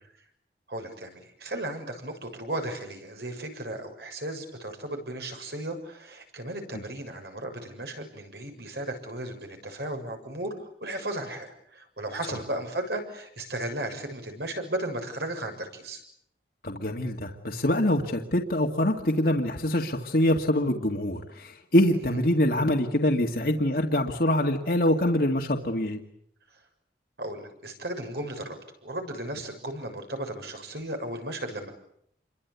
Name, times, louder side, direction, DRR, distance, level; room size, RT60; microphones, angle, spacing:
voice 1, 0.7-16.0 22.1-22.2 26.5-26.6 27.2-28.6 28.8-31.7, right 1 dB, 70° right, 5 dB, 7.0 m, -35 dB
voice 2, 16.6-26.0, left 1 dB, 55° left, 1 dB, 2.2 m, -24 dB
28.5 x 23.5 x 8.5 m, 0.71 s
head